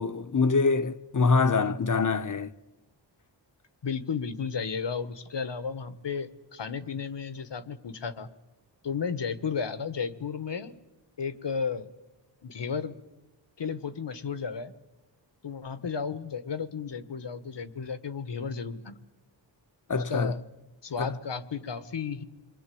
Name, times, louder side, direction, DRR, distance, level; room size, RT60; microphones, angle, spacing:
voice 1, 0.0-2.5 19.9-20.4 21.0-21.2, left 4 dB, 45° left, 1.2 m, -25 dB
voice 2, 3.8-8.3 8.8-10.8 11.2-11.9 12.4-12.9 13.6-14.7 15.4-19.0 19.9-20.4 20.8-22.2, left 6 dB, 65° left, 1.6 m, -33 dB
28.0 x 22.0 x 8.5 m
cardioid pair, 60°, 45 cm